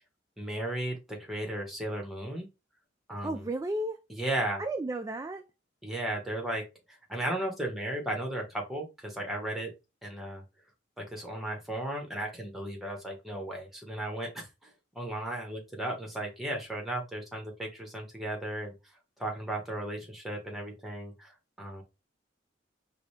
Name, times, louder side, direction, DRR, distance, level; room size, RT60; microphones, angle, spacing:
voice 1, 0.4-2.5 3.1-3.4 4.2-4.6 5.8-6.6 7.1-9.7 10.0-10.4 11.0-18.7 19.2-21.8, right 1 dB, ahead, 1.3 m, -35 dB
voice 2, 3.2-4.0 4.6-5.5, right 1 dB, 15° right, 0.3 m, -33 dB
5.0 x 2.7 x 3.3 m
head